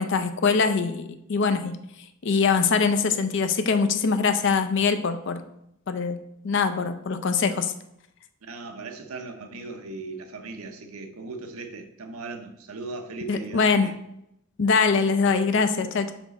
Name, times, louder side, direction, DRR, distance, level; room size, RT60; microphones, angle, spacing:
voice 1, 0.0-1.8 2.2-5.4 5.9-6.2 6.4-7.7 13.3-13.9 14.6-16.1, left 5 dB, 55° left, 9 dB, 0.5 m, -23 dB
voice 2, 8.4-13.9, right 3 dB, 80° right, 6 dB, 0.7 m, -38 dB
5.7 x 4.4 x 4.0 m, 0.79 s
head